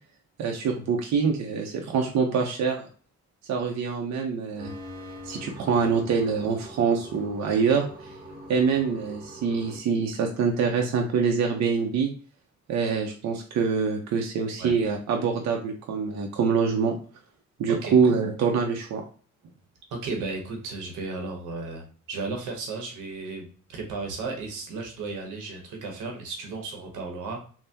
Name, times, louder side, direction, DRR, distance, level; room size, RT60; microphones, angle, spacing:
voice 1, 0.4-2.9 3.5-4.7 5.2-7.8 8.5-12.1 12.7-16.9 17.6-19.0, right 5 dB, 65° right, 2 dB, 0.6 m, -25 dB
sound 1, 4.6-9.8, equal, 30° right, 1.0 m, -43 dB
voice 2, 19.9-27.4, right 3 dB, 90° right, 2 dB, 0.9 m, -34 dB
3.4 x 2.1 x 2.7 m, 0.42 s
cardioid pair, 90°, 30 cm